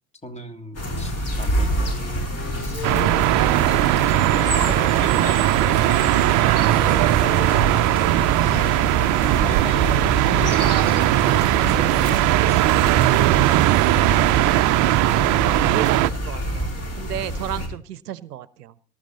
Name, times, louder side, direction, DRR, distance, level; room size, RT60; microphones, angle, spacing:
voice 1, 0.2-2.3 2.6-2.8 3.7-7.9 8.5-12.6, left 1 dB, 15° left, 9 dB, 2.4 m, -38 dB
sound 1, 0.7-17.7, equal, 30° left, 4.9 m, -28 dB
Wind instrument woodwind instrument, 1.9-4.9 5.2-8.5, left 7 dB, 75° left, 1.7 m, -38 dB
sound 2, 2.8-16.1, right 16 dB, 40° right, 0.7 m, -19 dB
voice 2, 15.0-18.7, right 11 dB, 75° right, 19 dB, 0.8 m, -34 dB
18.5 x 13.0 x 4.0 m, 0.40 s
figure-of-eight pair, 70°, 47 cm